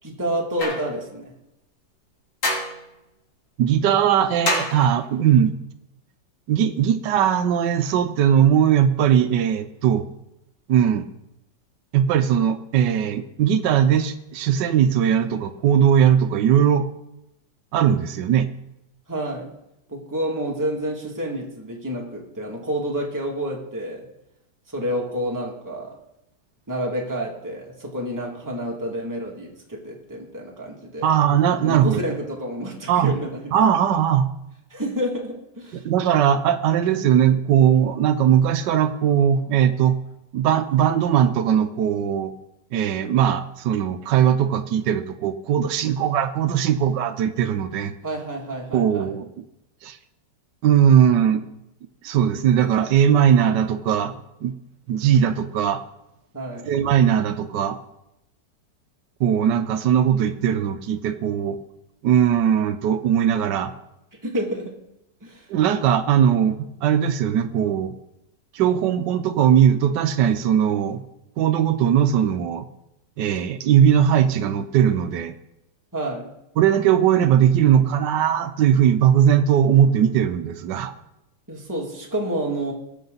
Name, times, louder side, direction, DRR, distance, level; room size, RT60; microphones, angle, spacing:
voice 1, 0.0-1.3 19.1-19.5 19.9-24.0 24.7-26.0 26.7-31.1 31.6-33.3 34.7-35.8 48.0-49.1 53.1-53.3 56.3-56.7 64.2-64.7 65.2-65.5 75.9-76.3 81.5-82.7, right 1 dB, 10° right, -1 dB, 2.3 m, -29 dB
sound 1, 0.6-0.9 2.4-2.8 4.5-5.0, left 1 dB, 85° left, 3.8 m, -25 dB
voice 2, 3.6-5.6 6.5-10.0 10.7-11.1 11.9-16.8 17.7-18.5 31.0-32.0 32.9-33.1 33.5-34.3 35.7-40.0 40.3-42.3 42.7-47.9 48.7-49.3 49.8-50.0 50.6-51.4 52.0-54.1 54.4-54.5 54.9-55.8 56.7-57.8 59.2-61.6 62.0-63.7 65.5-67.9 68.5-71.0 71.4-72.6 73.2-75.3 76.6-80.9, right 9 dB, 80° right, 8 dB, 1.4 m, -19 dB
21.0 x 7.3 x 4.0 m, 0.86 s
omnidirectional pair, 1.9 m